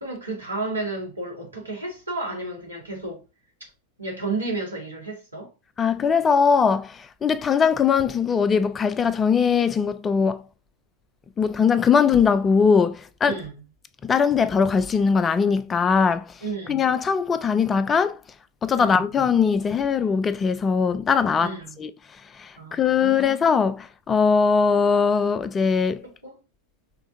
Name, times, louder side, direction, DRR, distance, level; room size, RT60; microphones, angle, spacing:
voice 1, 0.0-3.2 4.0-5.5 13.2-13.6 16.4-16.8 18.8-19.0 21.4-21.7 22.6-23.3 26.0-26.4, right 3 dB, 80° right, 1.8 m, -32 dB
voice 2, 5.8-10.4 11.4-13.4 14.0-16.4 16.7-18.2 18.6-21.9 22.3-26.0, left 6 dB, 20° left, 0.4 m, -21 dB
5.8 x 3.4 x 2.6 m
figure-of-eight pair, 90°, 0 cm